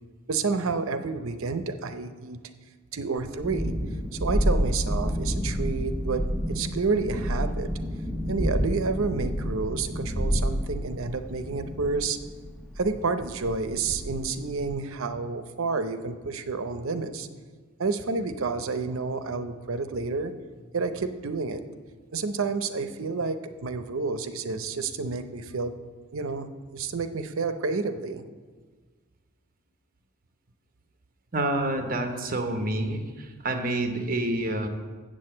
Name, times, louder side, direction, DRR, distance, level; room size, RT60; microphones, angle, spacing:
voice 1, 0.3-2.4 2.9-3.7 4.1-7.7 8.3-12.2 12.8-17.3 17.8-20.3 20.7-21.6 22.1-25.7 26.1-28.3, right 4 dB, 70° right, 10 dB, 0.6 m, -30 dB
Thunderstorm, 3.2-14.7, equal, 5° left, 0.5 m, -30 dB
voice 2, 31.3-34.7, right 1 dB, 40° right, 6 dB, 0.9 m, -28 dB
7.6 x 6.3 x 7.6 m, 1.5 s
head